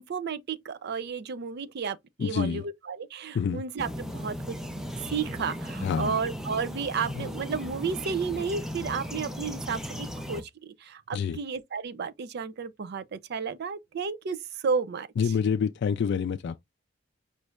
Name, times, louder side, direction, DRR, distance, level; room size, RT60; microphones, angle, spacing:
voice 1, 0.0-4.6 5.1-14.4 14.6-15.1, right 5 dB, 55° right, 0.4 m, -32 dB
voice 2, 2.2-2.6 3.3-3.6 5.8-6.1 7.2-7.3 11.1-11.4 15.2-16.6, left 6 dB, 60° left, 0.3 m, -27 dB
sound 1, 3.8-10.4, equal, 5° right, 0.5 m, -36 dB
5.1 x 3.1 x 2.3 m
head